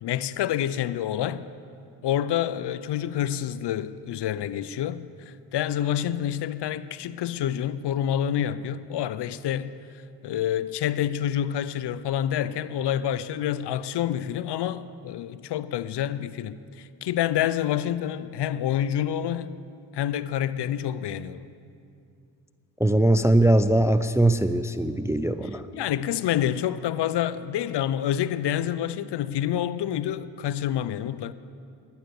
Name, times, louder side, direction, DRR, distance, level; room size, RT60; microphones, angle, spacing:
voice 1, 0.0-1.5 2.0-9.7 10.2-19.6 19.9-21.5 25.7-31.3, left 10 dB, 60° left, 0.5 m, -28 dB
voice 2, 22.8-25.6, right 1 dB, 5° right, 0.3 m, -21 dB
11.0 x 9.1 x 6.8 m
supercardioid pair, 50°, 46 cm